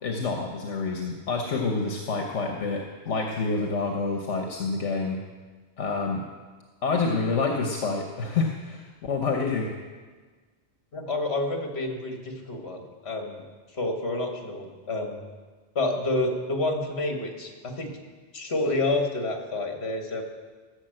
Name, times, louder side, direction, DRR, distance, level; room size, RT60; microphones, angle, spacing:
voice 1, 0.0-5.2 5.8-6.2 6.8-9.8, left 4 dB, 75° left, 2 dB, 1.4 m, -28 dB
voice 2, 10.9-13.4 13.7-15.2 15.8-18.0 18.3-20.2, left 2 dB, 60° left, 3 dB, 1.9 m, -29 dB
15.0 x 6.5 x 7.7 m, 1.4 s
omnidirectional pair, 1.2 m